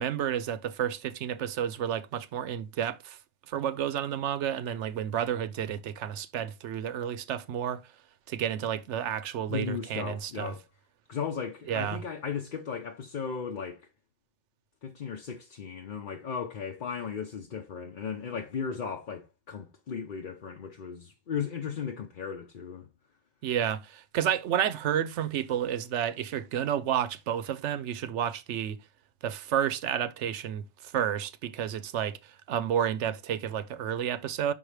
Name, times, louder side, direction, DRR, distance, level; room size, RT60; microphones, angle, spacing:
voice 1, 0.0-3.2 3.5-7.9 8.3-10.5 11.7-12.0 23.4-28.8 29.2-34.5, right 9 dB, 80° right, 1.0 m, -31 dB
voice 2, 9.5-10.6 11.1-13.9 14.8-22.9, left 6 dB, 50° left, 0.8 m, -36 dB
6.1 x 5.5 x 3.2 m
omnidirectional pair, 1.2 m